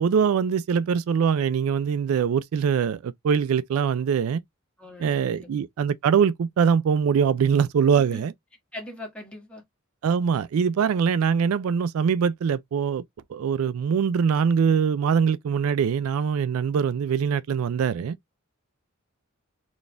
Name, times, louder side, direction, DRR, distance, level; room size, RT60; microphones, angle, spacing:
voice 1, 0.0-4.4 5.0-8.3 10.0-13.0 13.3-18.2, right 7 dB, 90° right, 0.3 m, -23 dB
voice 2, 4.8-5.5 8.0-8.2 8.7-9.6, left 1 dB, 5° left, 1.4 m, -40 dB
4.1 x 2.3 x 3.3 m
head